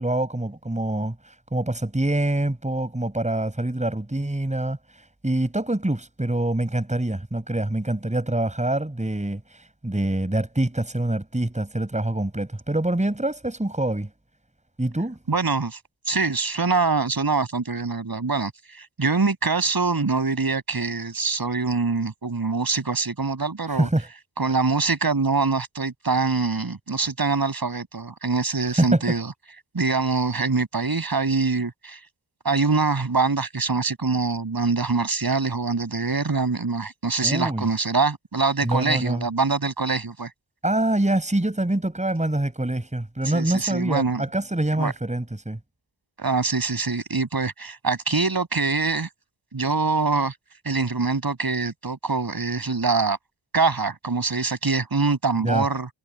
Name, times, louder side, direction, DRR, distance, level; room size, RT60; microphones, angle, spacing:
voice 1, 0.0-14.1 14.8-15.2 23.8-24.1 28.8-29.1 37.2-37.7 38.6-39.2 40.6-45.6 55.4-55.6, right 1 dB, 15° right, 6.2 m, -25 dB
voice 2, 15.3-15.8 16.1-23.9 24.4-29.3 29.7-32.0 32.4-40.3 43.2-44.2 44.8-44.9 46.2-49.1 49.5-50.3 50.6-53.2 53.5-55.9, right 4 dB, 45° right, 7.6 m, -24 dB
cardioid pair, 70°, 49 cm